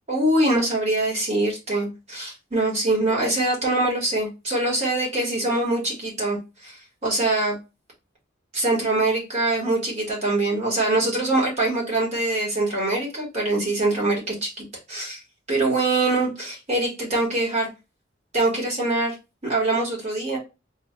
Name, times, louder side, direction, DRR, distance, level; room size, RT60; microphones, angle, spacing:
voice 1, 0.1-6.8 7.0-7.5 8.5-15.2 15.5-17.7 18.3-19.1 19.4-20.4, right 2 dB, 35° right, -3 dB, 1.3 m, -23 dB
4.3 x 2.3 x 2.2 m, 0.27 s
head